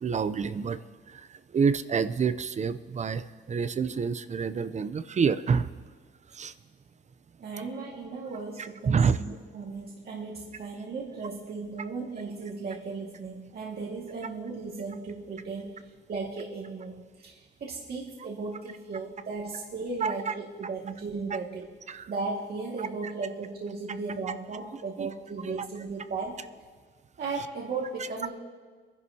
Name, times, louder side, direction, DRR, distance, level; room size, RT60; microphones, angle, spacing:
voice 1, 0.0-0.8 1.1-5.7 6.3-6.5 8.9-9.2 20.0-20.3 21.9-22.1 25.0-25.1 25.4-25.7, right 6 dB, 35° right, 13 dB, 0.6 m, -28 dB
voice 2, 7.4-15.8 16.1-21.7 22.1-26.4 27.2-28.3, right 4 dB, 50° right, -4 dB, 2.0 m, -36 dB
24.0 x 11.0 x 2.8 m, 1.5 s
cardioid pair, 90°, 20 cm